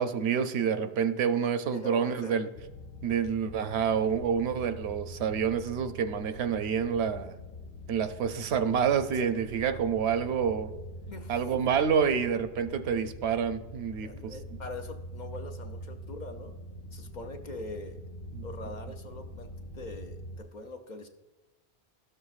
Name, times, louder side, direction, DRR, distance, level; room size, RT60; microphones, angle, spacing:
voice 1, 0.0-2.5 3.0-7.4 7.9-10.7 11.3-14.3 18.3-18.4, right 7 dB, 80° right, 9 dB, 0.8 m, -28 dB
voice 2, 1.7-2.4 11.1-11.6 14.0-16.6 16.9-18.0 18.4-21.1, left 2 dB, 50° left, 5 dB, 0.6 m, -43 dB
sound 1, 2.5-20.4, equal, 80° left, 0.9 m, -44 dB
13.0 x 6.7 x 2.4 m, 1.1 s
omnidirectional pair, 1.1 m